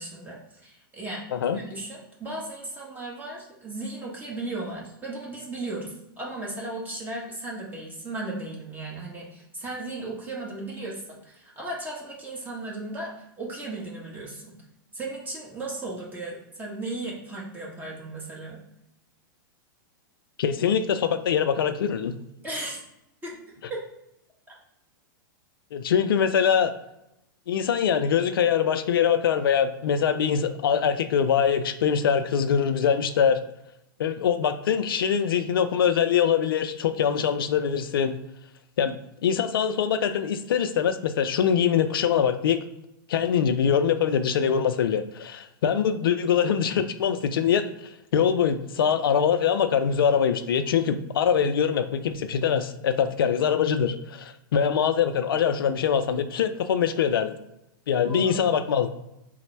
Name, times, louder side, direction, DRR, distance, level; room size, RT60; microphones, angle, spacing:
voice 1, 0.0-1.2 1.5-14.6 14.9-18.6 22.4-22.8 23.2-23.4 23.7-23.8 24.5-24.6 58.1-58.5, right 2 dB, 15° right, -3 dB, 1.1 m, -36 dB
voice 2, 20.4-22.1 25.7-26.7 27.5-33.4 34.0-38.2 38.8-39.0 39.2-42.6 43.1-47.7 48.1-57.4 57.9-58.9, left 7 dB, 80° left, 9 dB, 0.4 m, -23 dB
4.0 x 2.1 x 4.4 m, 0.85 s
hypercardioid pair, 120°, 12 cm